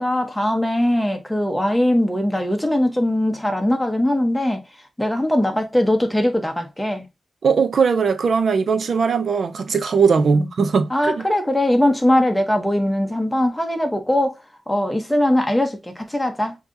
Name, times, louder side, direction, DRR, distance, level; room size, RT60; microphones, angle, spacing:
voice 1, 0.0-4.6 5.0-7.1 10.3-10.5 10.9-14.4 14.7-16.5, left 1 dB, 5° left, 1.0 m, -20 dB
voice 2, 7.4-11.2, right 5 dB, 65° right, 0.6 m, -19 dB
5.8 x 2.9 x 2.7 m
wide cardioid pair, 130°, 0 cm